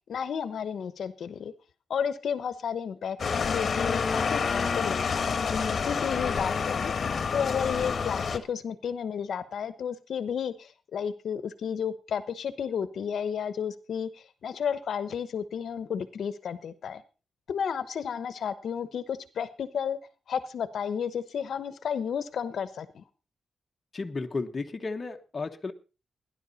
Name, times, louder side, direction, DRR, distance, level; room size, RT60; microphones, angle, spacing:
voice 1, 0.1-1.5 1.9-6.9 7.3-17.0 17.5-20.0 20.3-23.0, left 7 dB, 70° left, 13 dB, 1.0 m, -32 dB
sound 1, 3.2-8.4, left 5 dB, 45° left, 1.3 m, -28 dB
voice 2, 23.9-25.7, left 3 dB, 30° left, 4 dB, 1.2 m, -33 dB
17.5 x 11.0 x 4.1 m, 0.33 s
wide cardioid pair, 140°, 0 cm